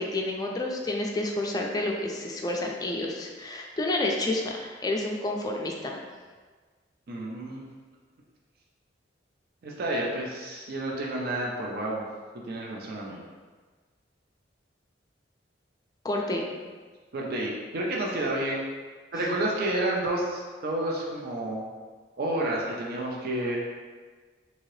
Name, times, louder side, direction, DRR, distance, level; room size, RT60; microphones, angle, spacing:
voice 1, 0.0-6.0 16.0-16.5, left 2 dB, 20° left, 0 dB, 0.3 m, -29 dB
voice 2, 7.1-7.6 9.6-12.0 12.4-13.2 17.1-18.6 19.1-21.7 22.2-23.6, right 1 dB, 55° right, -2 dB, 0.4 m, -30 dB
2.8 x 2.7 x 3.1 m, 1.5 s
head